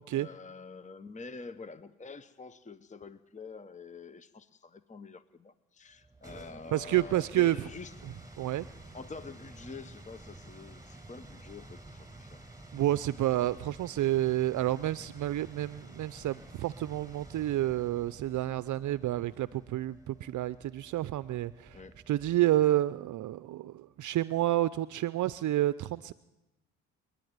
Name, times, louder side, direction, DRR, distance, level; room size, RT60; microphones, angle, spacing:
voice 1, 0.1-8.0 8.9-12.4 21.7-22.0, left 4 dB, 20° left, 13 dB, 1.0 m, -47 dB
sound 1, 5.9-22.6, right 2 dB, 10° right, 5.4 m, -51 dB
voice 2, 6.7-7.7 8.4-8.7 12.7-21.8 22.1-26.1, right 14 dB, 55° right, 16 dB, 0.6 m, -29 dB
29.5 x 10.0 x 9.5 m, 1.0 s
supercardioid pair, 65°, 36 cm